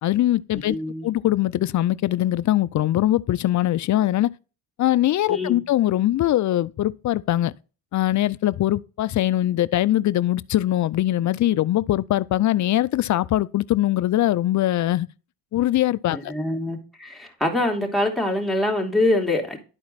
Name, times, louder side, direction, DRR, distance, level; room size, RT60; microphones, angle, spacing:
voice 1, 0.0-0.8 1.0-4.3 4.8-7.5 7.9-15.1 15.5-16.3, left 14 dB, 40° left, 0.5 m, -22 dB
voice 2, 0.7-1.1 5.3-5.6 16.1-19.6, left 1 dB, ahead, 2.6 m, -24 dB
11.5 x 4.3 x 4.1 m
supercardioid pair, 75°, 46 cm